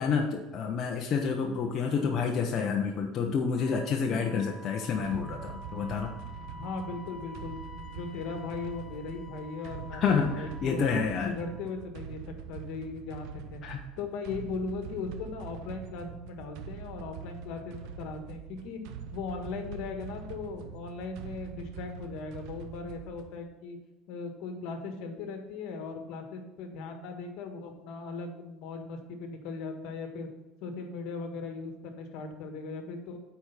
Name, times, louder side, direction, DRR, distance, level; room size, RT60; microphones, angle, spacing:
voice 1, 0.0-6.1 10.0-11.3 13.6-13.8, left 5 dB, 40° left, 1 dB, 0.8 m, -29 dB
Wind instrument woodwind instrument, 3.5-11.8, left 1 dB, 10° left, 3.1 m, -49 dB
sound 1, 5.0-23.4, right 7 dB, 65° right, 0.7 m, -44 dB
voice 2, 6.5-10.0 10.3-10.9 11.2-12.2 12.5-13.6 14.0-18.8 19.1-23.8 24.1-30.3 30.6-33.2, left 4 dB, 65° left, 5 dB, 1.5 m, -38 dB
8.6 x 4.8 x 5.7 m, 1.1 s
cardioid pair, 150°, 0 cm